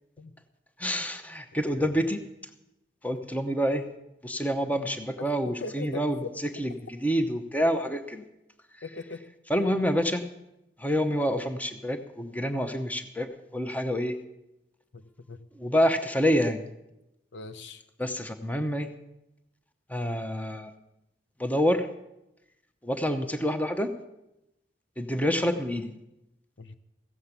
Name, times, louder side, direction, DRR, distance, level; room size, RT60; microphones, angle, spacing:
voice 1, 0.8-2.3 3.0-3.9 4.2-8.3 9.5-10.2 10.8-14.2 15.5-16.6 18.0-18.9 19.9-20.7 21.4-21.9 22.8-23.9 25.0-25.9, equal, 10° left, 8 dB, 0.7 m, -27 dB
voice 2, 5.6-6.3 8.8-9.2 14.9-15.0 15.3-15.4 17.3-17.8 26.6-26.7, left 3 dB, 80° left, 10 dB, 0.8 m, -39 dB
16.0 x 7.4 x 8.2 m, 0.90 s
head